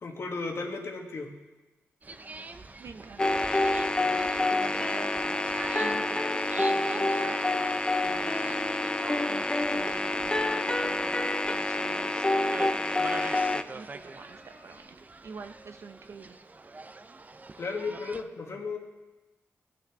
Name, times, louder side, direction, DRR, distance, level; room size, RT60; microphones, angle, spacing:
voice 1, 0.0-1.3 17.6-18.8, left 4 dB, 55° left, 3 dB, 1.5 m, -34 dB
sound 1, 2.0-18.2, right 3 dB, 30° right, 0.5 m, -44 dB
voice 2, 2.8-3.4 4.0-5.4 5.7-7.4 7.7-9.0 9.2-13.0 13.7-14.9 15.2-16.4, right 5 dB, 65° right, 7 dB, 0.8 m, -46 dB
sound 2, 3.2-13.6, left 2 dB, 15° left, 0.4 m, -27 dB
sound 3, 4.5-14.8, equal, 85° right, 2.6 m, -55 dB
16.5 x 6.5 x 4.7 m, 1.2 s
cardioid pair, 90°, 5 cm